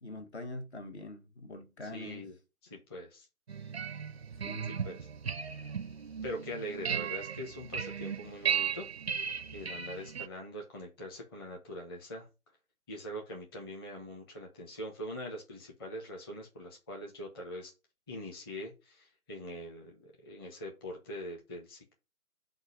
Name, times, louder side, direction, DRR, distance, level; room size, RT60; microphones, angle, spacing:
voice 1, 0.0-2.2 4.4-4.7, left 2 dB, 50° left, 1.2 m, -43 dB
voice 2, 1.9-2.3 2.7-3.3 4.7-5.0 6.2-8.9 9.1-12.3 12.9-17.7 18.1-21.9, equal, 15° left, 1.1 m, -43 dB
sound 1, 3.5-10.3, right 7 dB, 50° right, 0.4 m, -36 dB
7.9 x 2.7 x 4.9 m
figure-of-eight pair, 155°, 44 cm